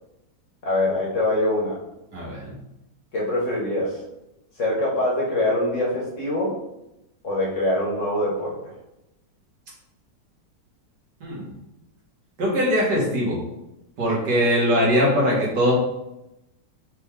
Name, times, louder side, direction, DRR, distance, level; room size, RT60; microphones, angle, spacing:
voice 1, 0.6-1.8 3.1-4.0 4.5-6.6 7.2-8.7, left 1 dB, 50° left, -4 dB, 1.2 m, -24 dB
voice 2, 2.1-2.5 11.2-11.5 12.4-13.4 14.0-15.7, equal, 65° right, -5 dB, 1.9 m, -21 dB
4.3 x 3.2 x 3.6 m, 0.90 s
omnidirectional pair, 1.9 m